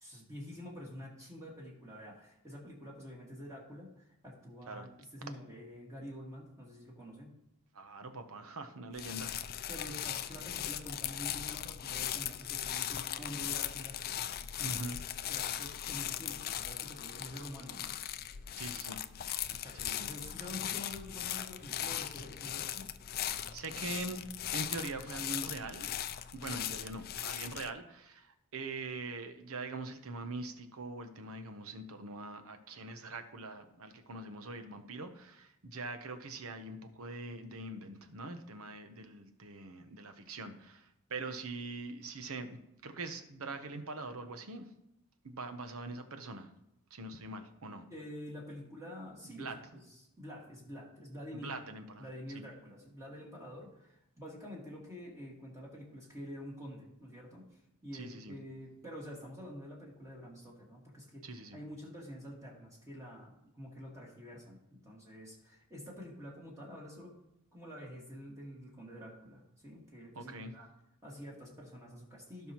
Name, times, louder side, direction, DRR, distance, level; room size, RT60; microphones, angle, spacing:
voice 1, 0.0-7.4 9.7-14.0 14.5-15.0 15.3-18.0 19.5-22.9 47.9-51.6 52.0-57.5 57.8-67.1 67.5-70.7 71.0-72.5, equal, 15° right, -4 dB, 2.0 m, -48 dB
voice 2, 7.7-9.4 14.6-15.0 18.6-19.0 19.7-20.1 23.5-24.2 24.5-25.9 26.3-42.6 42.8-44.7 45.2-46.5 46.9-47.9 49.4-49.6 51.4-52.1 52.3-52.5 57.9-58.4 61.2-61.6 70.1-70.5, right 2 dB, 70° right, 8 dB, 1.0 m, -43 dB
sound 1, 8.9-27.7, left 11 dB, 45° left, 0.4 m, -39 dB
16.5 x 5.5 x 3.0 m, 0.83 s
head